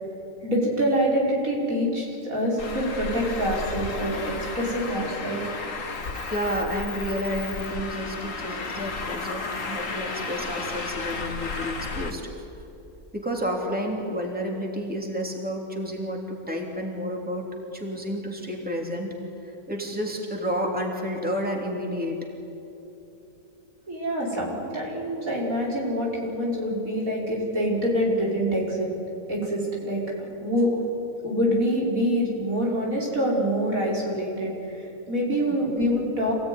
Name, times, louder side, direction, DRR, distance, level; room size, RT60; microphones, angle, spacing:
voice 1, 0.4-5.4 23.9-28.9 29.3-30.8 31.2-36.3, equal, 80° right, -4 dB, 5.8 m, -26 dB
Traffic noise roadway noise, 2.6-12.1, left 3 dB, 65° left, 2.1 m, -33 dB
voice 2, 6.3-12.3 13.1-22.3 24.3-24.4, equal, 5° right, 0 dB, 3.1 m, -30 dB
27.5 x 17.5 x 10.0 m, 2.9 s
omnidirectional pair, 1.4 m